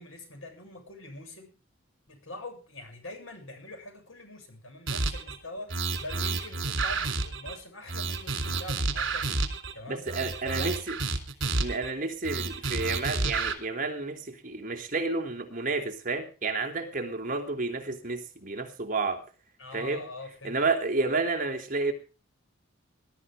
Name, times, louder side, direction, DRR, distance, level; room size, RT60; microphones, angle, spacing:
voice 1, 0.0-1.6 2.1-9.3 9.7-10.1 10.4-10.8 19.6-20.6, left 1 dB, 75° left, 5 dB, 7.4 m, -43 dB
sound 1, 4.9-5.4 5.7-7.6 7.9-9.7 10.1-11.9 12.2-13.5, right 3 dB, 60° right, 3.6 m, -30 dB
voice 2, 9.9-10.9 11.6-19.2 19.7-20.0 20.4-21.9, right 3 dB, 40° right, 4 dB, 3.2 m, -30 dB
21.0 x 12.5 x 3.7 m, 0.34 s
head